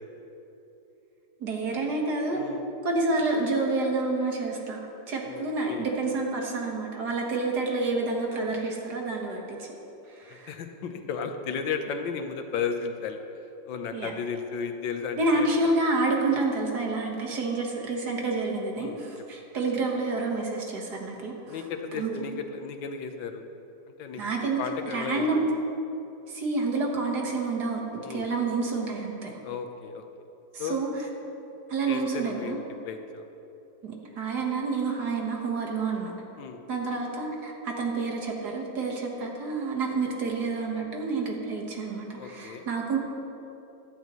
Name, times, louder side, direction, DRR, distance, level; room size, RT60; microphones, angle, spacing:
voice 1, 1.4-2.4 2.8-4.8 5.1-9.7 10.1-10.5 13.9-14.1 15.2-21.6 22.0-22.2 24.1-24.6 24.9-25.4 26.3-27.8 28.1-29.3 30.5-30.9 31.7-32.6 33.8-36.1 36.7-43.0, right 3 dB, 60° right, 0 dB, 2.0 m, -28 dB
voice 2, 5.2-5.9 10.3-13.2 13.7-15.5 16.3-16.4 18.8-19.0 21.4-23.5 24.0-24.2 24.6-25.5 28.0-28.3 29.4-30.0 30.6-30.8 31.9-33.3 36.4-36.6 39.9-40.0 42.2-42.7, left 6 dB, 80° left, 6 dB, 1.6 m, -34 dB
16.5 x 12.0 x 3.1 m, 2.9 s
omnidirectional pair, 2.0 m